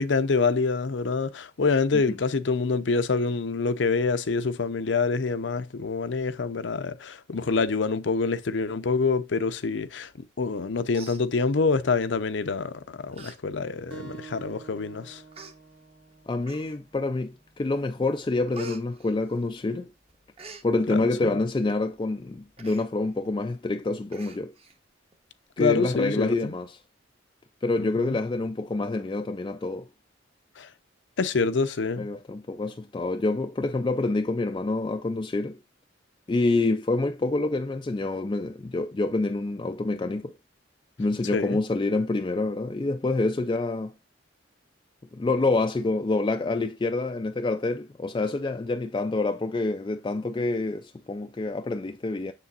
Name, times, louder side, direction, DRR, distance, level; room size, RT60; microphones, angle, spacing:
voice 1, 0.0-10.1 10.4-15.2 20.9-21.3 25.6-26.5 27.8-28.2 30.6-30.7 31.2-32.1 41.3-41.6, left 4 dB, 70° left, 0.6 m, -26 dB
Human voice, 10.4-10.6 10.9-11.8 12.6-12.7 13.1-13.4 13.7-13.8 14.6-14.7 15.3-15.5 16.4-17.0 17.5-17.8 18.1-19.8 20.1-20.7 22.6-22.9 23.2-23.3 23.6-23.7 24.1-24.8 25.1-25.2, right 1 dB, 30° right, 0.9 m, -44 dB
sound 1, 13.9-19.0, right 5 dB, 65° right, 1.4 m, -49 dB
voice 2, 16.3-19.9 20.6-24.5 25.6-26.8 27.6-29.9 32.0-35.6 36.3-40.3 41.0-43.9 45.1-52.3, left 2 dB, 25° left, 0.3 m, -27 dB
6.8 x 6.7 x 2.4 m
head